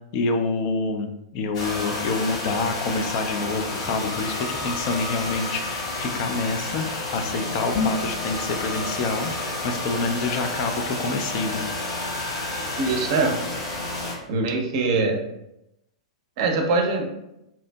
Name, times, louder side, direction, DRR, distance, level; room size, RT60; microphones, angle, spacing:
voice 1, 0.1-11.7, left 3 dB, 45° left, 5 dB, 0.3 m, -27 dB
sound 1, 1.5-14.1, left 2 dB, 60° left, 0.8 m, -30 dB
sound 2, 7.6-8.2, left 4 dB, 15° left, 0.7 m, -26 dB
voice 2, 12.8-13.4 14.3-15.2 16.4-17.1, right 3 dB, 50° right, 3 dB, 0.5 m, -22 dB
2.7 x 2.4 x 2.2 m, 0.86 s
figure-of-eight pair, 100°, 3 cm